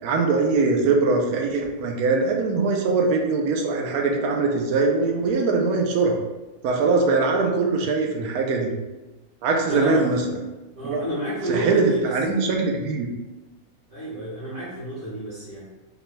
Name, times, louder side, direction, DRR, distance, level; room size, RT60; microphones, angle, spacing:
voice 1, 0.0-6.2 6.6-8.7 9.4-10.2 10.8-11.0 11.5-13.1, right 3 dB, 80° right, 1 dB, 1.1 m, -22 dB
voice 2, 9.7-10.1 10.8-12.1 13.9-15.7, right 1 dB, 65° right, -12 dB, 2.0 m, -29 dB
4.6 x 3.4 x 2.2 m, 1.1 s
omnidirectional pair, 1.6 m